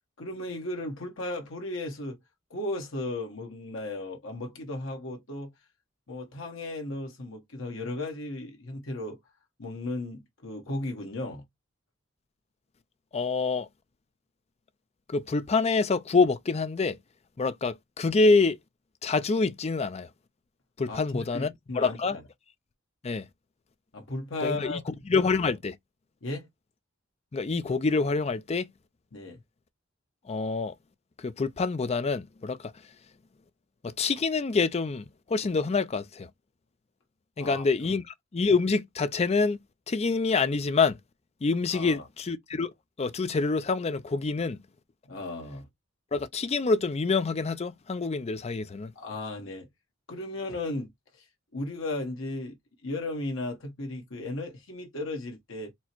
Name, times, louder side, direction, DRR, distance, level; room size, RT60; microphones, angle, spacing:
voice 1, 0.2-2.2 2.5-5.5 6.1-9.2 9.6-11.4 20.9-22.2 23.9-24.8 26.2-26.5 29.1-29.4 37.4-37.6 41.7-42.0 45.0-45.7 48.9-49.7 50.1-50.9 51.5-52.6 52.8-55.7, left 2 dB, 70° left, 1.2 m, -35 dB
voice 2, 13.1-13.7 15.1-17.0 17.4-18.6 19.0-20.1 20.8-22.2 23.0-23.3 24.4-25.8 27.3-28.7 30.3-30.7 31.2-32.7 33.8-36.3 37.4-39.6 39.9-41.0 41.4-42.7 43.0-44.6 46.1-48.9, left 4 dB, 30° left, 0.4 m, -26 dB
4.4 x 2.1 x 4.4 m
head